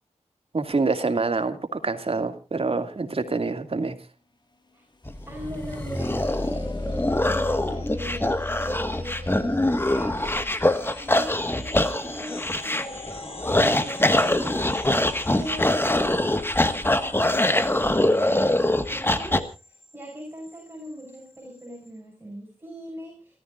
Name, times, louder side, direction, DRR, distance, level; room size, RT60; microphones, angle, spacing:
voice 1, 0.5-4.0, right 3 dB, 50° right, 8 dB, 2.5 m, -26 dB
sound 1, 5.0-12.8 14.9-15.1 15.5-16.1 16.7-16.8 17.3-17.6, left 2 dB, 35° left, 1.9 m, -37 dB
sound 2, 5.1-19.4, left 1 dB, 20° left, 1.6 m, -24 dB
voice 2, 5.3-10.2 11.0-14.8 15.3-19.5 19.9-23.4, equal, 15° right, -2 dB, 7.3 m, -39 dB
sound 3, 5.7-21.9, left 3 dB, 55° left, 4.6 m, -46 dB
29.5 x 14.0 x 2.5 m, 0.32 s
wide cardioid pair, 90°, 12 cm